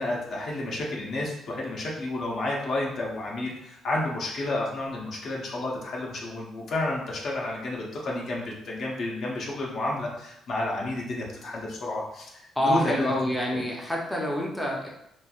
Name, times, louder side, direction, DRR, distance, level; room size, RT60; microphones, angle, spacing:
voice 1, 0.0-13.1 13.5-13.6, left 2 dB, 60° left, -3 dB, 0.7 m, -31 dB
voice 2, 12.6-14.9, left 1 dB, 5° left, -2 dB, 0.6 m, -27 dB
3.0 x 2.5 x 2.3 m, 0.80 s
cardioid pair, 90°, 0 cm